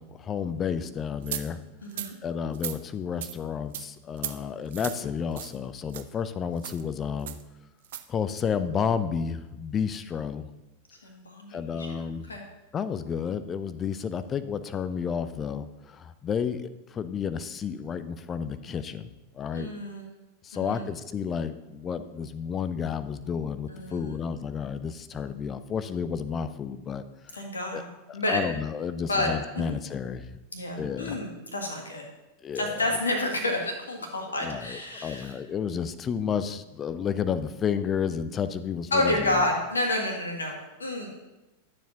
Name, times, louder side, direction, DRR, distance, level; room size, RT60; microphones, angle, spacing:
voice 1, 0.0-1.6 2.2-7.4 8.1-10.5 11.5-12.3 12.7-19.7 20.4-27.4 27.7-27.8 28.1-30.3 30.8-31.2 32.4-32.8 34.3-39.5, left 7 dB, 25° left, 13 dB, 0.5 m, -31 dB
sound 1, 1.3-1.4 1.9-2.1 2.5-2.8 3.2-3.3 3.7-3.9 4.2-4.3 4.7-5.0 5.3-5.6 5.9-6.0 6.6-6.8 7.3-7.4 7.8-8.0, right 12 dB, 55° right, 0.5 m, -35 dB
voice 2, 1.8-2.1 11.0-11.9 12.3-12.4 19.5-20.1 20.5-20.9 23.7-24.2 27.3-27.8 28.1-28.4 29.0-29.7 30.5-32.0 32.6-35.3 38.9-41.1, left 1 dB, 75° left, 1 dB, 1.7 m, -29 dB
12.0 x 7.1 x 2.9 m, 1.0 s
figure-of-eight pair, 90°, 0 cm